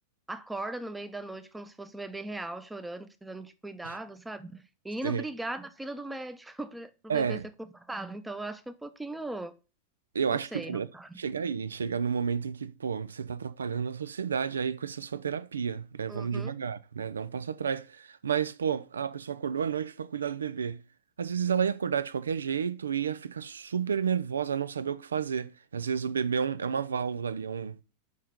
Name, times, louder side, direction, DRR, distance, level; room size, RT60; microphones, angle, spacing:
voice 1, 0.3-7.4 7.8-9.5 10.3-11.2 16.1-16.5, right 2 dB, 5° right, 0.7 m, -39 dB
voice 2, 7.1-7.4 10.1-10.9 11.2-20.8 21.2-27.8, right 7 dB, 70° right, 0.5 m, -31 dB
5.6 x 5.6 x 6.3 m
figure-of-eight pair, 90°, 0 cm